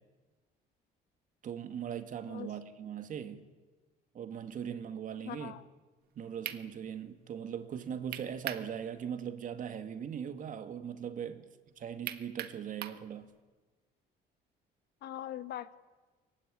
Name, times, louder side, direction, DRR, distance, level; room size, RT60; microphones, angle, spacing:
voice 1, 1.4-3.4 4.1-5.6 6.2-11.5 11.8-13.3, right 8 dB, 50° right, 2.2 m, -40 dB
voice 2, 5.2-5.7 15.0-15.8, left 12 dB, 75° left, 1.3 m, -41 dB
sound 1, 6.0-6.1 6.4-6.6 8.1-8.7 9.1-9.2 12.1-13.0, right 11 dB, 70° right, 1.5 m, -39 dB
24.0 x 19.0 x 9.9 m
cardioid pair, 110°, 17 cm